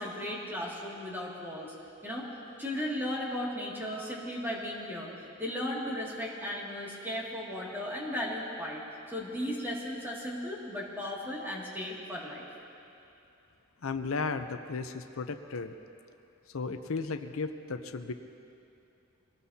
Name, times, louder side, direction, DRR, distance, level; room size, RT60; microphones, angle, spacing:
voice 1, 0.0-1.7 2.0-5.1 5.4-8.8 9.1-12.5, left 1 dB, 10° right, -4 dB, 2.3 m, -36 dB
voice 2, 13.8-15.7 16.5-18.1, left 4 dB, 80° left, 8 dB, 0.7 m, -35 dB
24.0 x 18.5 x 2.8 m, 2.6 s
head